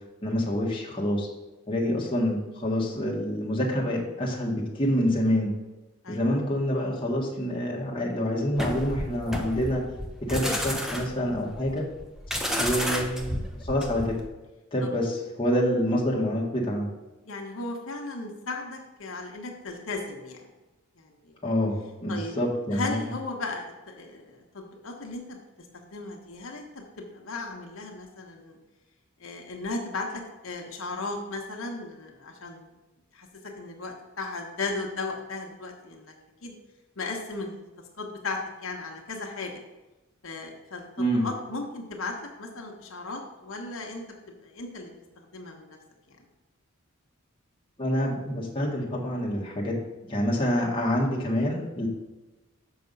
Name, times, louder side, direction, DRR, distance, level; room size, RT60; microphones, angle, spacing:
voice 1, 0.2-1.3 1.7-5.5 6.1-9.8 10.2-11.8 12.6-13.3 13.6-14.2 14.7-16.9 21.4-23.1 41.0-41.3 47.8-49.8 50.1-51.9, equal, 25° left, -3 dB, 1.6 m, -27 dB
sound 1, 8.6-14.3, equal, ahead, 0.7 m, -31 dB
voice 2, 17.2-20.4 21.0-21.3 22.1-22.3 22.7-25.4 25.7-28.6 29.2-32.6 33.1-33.3 33.6-36.1 36.4-36.5 37.0-37.6 38.0-39.6 40.2-44.0 44.4-44.9 45.2-45.8, left 3 dB, 75° left, 1 dB, 1.2 m, -36 dB
7.0 x 5.7 x 5.3 m, 1.1 s
head